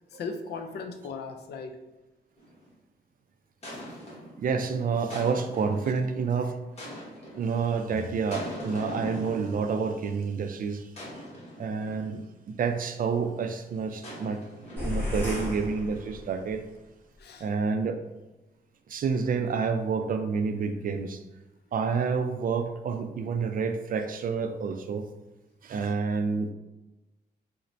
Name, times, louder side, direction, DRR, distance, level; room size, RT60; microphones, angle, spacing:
voice 1, 0.1-1.8 7.9-8.1 17.2-17.5, left 4 dB, 75° left, 6 dB, 0.4 m, -37 dB
sound 1, 2.4-2.7 3.6-4.4 5.1-5.9 6.8-7.5 8.3-10.0 10.9-12.2 14.0-15.3, equal, 40° left, 1.2 m, -41 dB
voice 2, 4.4-6.6 7.3-10.9 11.6-12.2 12.5-16.6 17.4-18.0 18.9-21.2 21.7-25.1 25.6-26.5, right 5 dB, 55° right, 6 dB, 0.4 m, -29 dB
sound 2, 14.8-16.6, left 1 dB, 10° left, 1.1 m, -33 dB
4.1 x 2.1 x 2.5 m, 1.0 s
cardioid pair, 105°, 17 cm